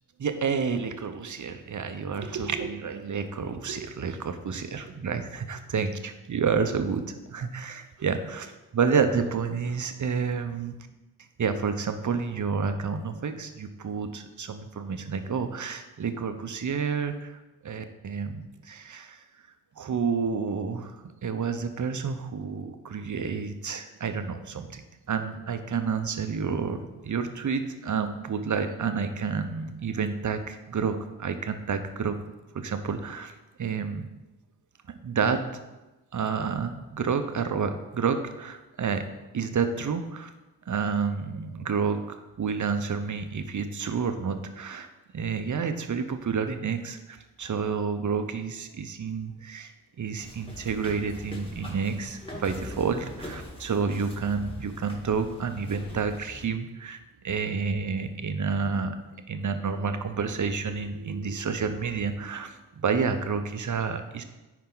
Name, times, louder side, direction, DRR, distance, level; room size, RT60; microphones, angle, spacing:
voice 1, 0.2-10.7 11.4-19.2 19.8-24.8 25.1-32.2 32.5-34.1 35.0-35.5 36.1-39.1 39.3-40.3 40.7-49.7 50.0-57.0 57.2-64.2, right 5 dB, 45° right, 8 dB, 1.0 m, -29 dB
sound 1, 50.2-56.5, left 1 dB, 15° left, 2.4 m, -42 dB
10.5 x 4.6 x 4.0 m, 1.1 s
supercardioid pair, 50°, 41 cm